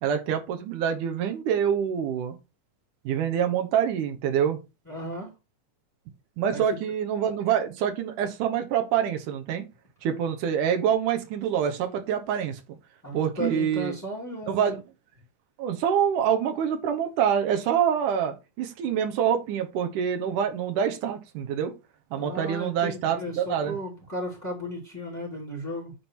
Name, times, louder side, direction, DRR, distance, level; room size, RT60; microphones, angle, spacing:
voice 1, 0.0-2.4 3.1-4.6 6.4-9.7 10.0-12.6 13.1-13.9 14.5-14.8 15.6-21.7 22.1-23.8, right 8 dB, 85° right, 2.7 m, -26 dB
voice 2, 4.9-5.3 6.5-6.6 13.0-14.6 22.1-26.0, equal, 5° left, 2.0 m, -35 dB
9.6 x 3.7 x 4.4 m
omnidirectional pair, 3.5 m